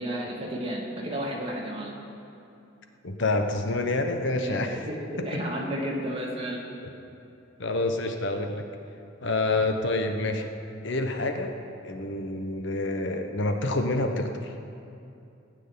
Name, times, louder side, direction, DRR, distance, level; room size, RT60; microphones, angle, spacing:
voice 1, 0.0-1.9 4.3-6.6, equal, 30° right, -3 dB, 2.5 m, -32 dB
voice 2, 3.0-4.8 5.2-5.3 7.6-8.6 9.2-10.5 10.8-11.5 11.8-14.5, left 2 dB, 65° left, 5 dB, 1.1 m, -27 dB
18.5 x 6.4 x 9.8 m, 2.6 s
head